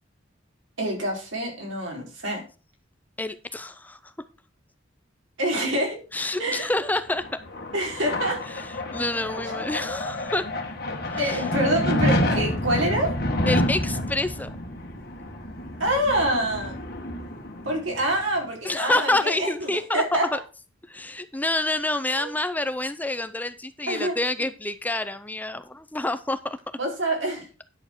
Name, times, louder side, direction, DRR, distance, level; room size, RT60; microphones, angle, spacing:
voice 1, 0.8-2.4 5.4-6.0 6.4-6.7 7.7-8.4 9.3-9.6 11.2-13.1 15.8-16.8 17.6-20.3 22.2-22.3 23.9-24.2 26.8-27.5, right 1 dB, 80° right, 0 dB, 4.4 m, -26 dB
voice 2, 3.2-4.0 6.1-7.3 8.5-8.7 8.9-10.4 11.1-11.4 13.5-14.5 18.6-20.4 20.9-26.6, left 2 dB, 10° left, 12 dB, 0.6 m, -27 dB
sound 1, 6.9-18.2, left 1 dB, 55° left, 1.9 m, -29 dB
10.5 x 7.1 x 4.5 m, 0.35 s
head